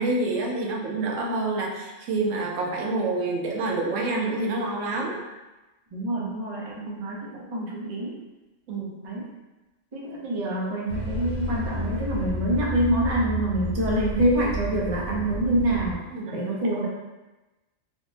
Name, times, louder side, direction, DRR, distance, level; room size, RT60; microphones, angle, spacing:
voice 1, 0.0-5.2 8.7-9.0 16.1-16.4, right 2 dB, 90° right, -1 dB, 1.0 m, -27 dB
voice 2, 5.9-8.2 9.0-9.3 9.9-16.9, right 1 dB, 45° right, -3 dB, 0.4 m, -26 dB
sound 1, 10.9-15.9, equal, 60° left, 0.9 m, -31 dB
3.4 x 2.0 x 2.6 m, 1.1 s
omnidirectional pair, 1.3 m